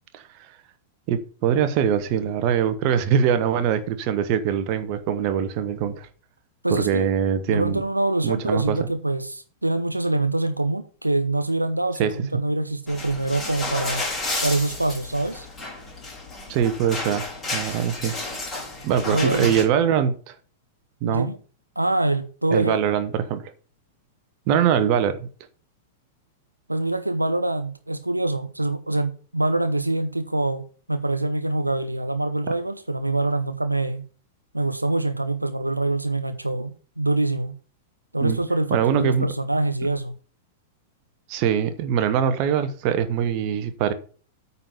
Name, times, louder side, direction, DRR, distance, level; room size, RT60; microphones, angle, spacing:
voice 1, 0.1-0.6 1.1-6.1 6.7-7.8 8.2-8.8 12.0-12.1 16.5-17.2 17.5-18.1 18.8-20.3 21.0-21.3 22.5-23.5 24.5-25.3 38.2-38.4 38.7-39.3 41.3-43.9, right 8 dB, 40° right, 1.1 m, -23 dB
voice 2, 6.6-7.1 7.5-14.0 14.4-15.5 19.1-19.6 21.0-21.4 21.8-22.8 26.7-30.6 30.9-34.0 34.5-37.5 38.1-40.1, right 2 dB, 85° right, 0.6 m, -25 dB
sound 1, 12.9-19.6, left 2 dB, 15° left, 4.0 m, -32 dB
8.9 x 4.2 x 7.0 m
figure-of-eight pair, 95°, 0 cm